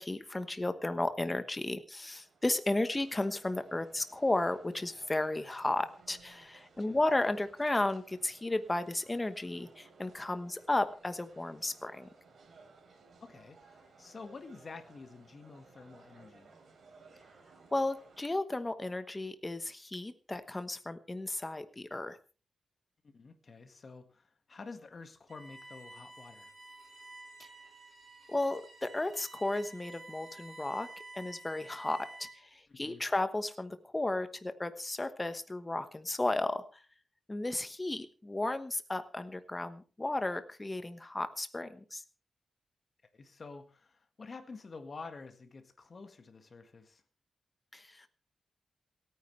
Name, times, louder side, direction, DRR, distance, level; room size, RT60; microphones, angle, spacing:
voice 1, 0.0-12.1 17.7-22.2 27.4-27.5 28.3-30.9 31.1-32.1 32.3-36.8 37.3-42.0 47.7-48.1, left 2 dB, 15° left, 10 dB, 1.1 m, -34 dB
sound 1, 2.1-18.3, right 4 dB, 60° right, 3.6 m, -60 dB
voice 2, 13.2-16.5 23.0-26.5 32.7-33.0 43.1-47.0, left 4 dB, 35° left, 7 dB, 1.8 m, -49 dB
Bowed string instrument, 25.3-32.5, right 2 dB, 40° right, 3.6 m, -51 dB
27.5 x 9.6 x 3.3 m, 0.36 s
wide cardioid pair, 170°, 0 cm